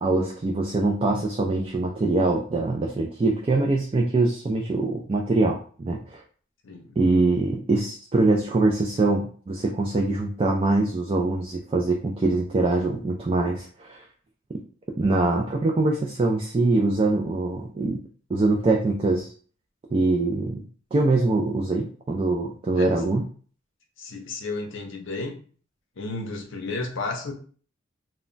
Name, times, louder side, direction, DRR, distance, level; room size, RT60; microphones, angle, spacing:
voice 1, 0.0-6.2 7.0-14.0 15.0-18.0 18.3-19.3 19.9-20.6 20.9-23.3, right 2 dB, 25° right, 0 dB, 0.3 m, -23 dB
voice 2, 6.6-7.0 22.8-22.9 24.0-25.4 26.0-27.3, left 3 dB, 65° left, 3 dB, 0.6 m, -32 dB
2.2 x 2.1 x 3.8 m, 0.42 s
head